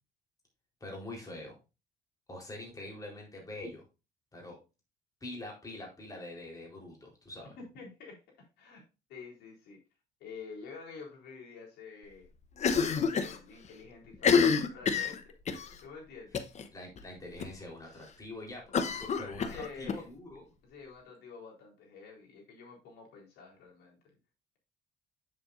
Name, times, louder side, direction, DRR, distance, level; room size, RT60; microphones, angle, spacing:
voice 1, 0.8-1.6 2.3-3.8 4.3-4.6 5.2-7.5 16.7-20.4, left 2 dB, 20° left, -1 dB, 4.0 m, -44 dB
voice 2, 7.6-8.2 8.6-8.8 9.1-9.8 10.2-12.3 13.1-15.3 15.8-16.5 19.5-20.0 20.6-24.0, left 5 dB, 80° left, -2 dB, 4.0 m, -48 dB
Cough, 12.6-13.4 13.6-13.7 14.1-15.7 16.3-16.6 17.0-17.1 17.4-17.5 18.7-20.0, left 6 dB, 45° left, 0.9 m, -28 dB
8.1 x 7.6 x 2.6 m, 0.29 s
cardioid pair, 110°, 17 cm